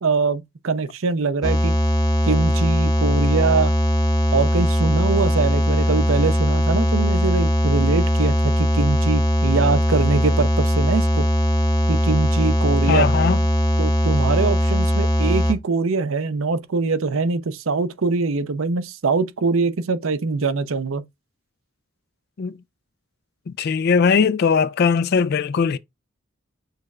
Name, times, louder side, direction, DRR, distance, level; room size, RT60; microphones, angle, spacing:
voice 1, 0.0-1.8 2.3-3.7 4.3-11.3 11.9-13.1 13.8-21.0, right 4 dB, 80° right, 0.6 m, -23 dB
sound 1, 1.4-15.5, equal, 20° left, 0.7 m, -19 dB
voice 2, 12.9-13.4 22.4-22.5 23.6-25.8, left 5 dB, 50° left, 0.4 m, -19 dB
6.6 x 3.1 x 2.4 m
head